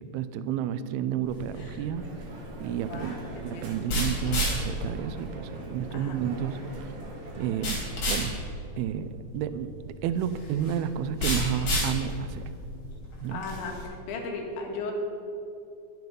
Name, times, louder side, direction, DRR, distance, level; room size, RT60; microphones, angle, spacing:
voice 1, 0.0-2.1 2.6-3.2 3.4-6.9 7.4-7.8 8.1-8.3 8.8-12.5 13.2-13.4, right 9 dB, 85° right, 11 dB, 2.2 m, -31 dB
sound 1, 1.2-13.8, equal, 40° left, 4.8 m, -33 dB
Crowd, 1.9-8.2, right 1 dB, 50° right, 2.8 m, -43 dB
voice 2, 2.9-3.3 3.5-3.7 5.9-6.2 13.3-13.8 14.1-14.9, left 4 dB, 80° left, 1 dB, 4.0 m, -35 dB
22.5 x 7.8 x 5.5 m, 2.8 s
omnidirectional pair, 5.3 m